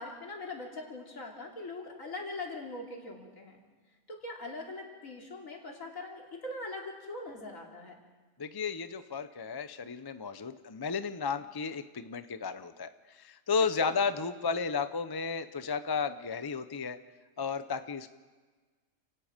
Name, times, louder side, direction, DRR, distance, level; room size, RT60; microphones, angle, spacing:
voice 1, 0.0-3.6 4.1-7.9 13.8-14.0, left 2 dB, 75° left, 0 dB, 3.5 m, -41 dB
voice 2, 8.4-17.0 17.4-18.1, left 5 dB, 25° left, 11 dB, 0.5 m, -33 dB
30.0 x 18.0 x 5.2 m, 1.3 s
omnidirectional pair, 1.4 m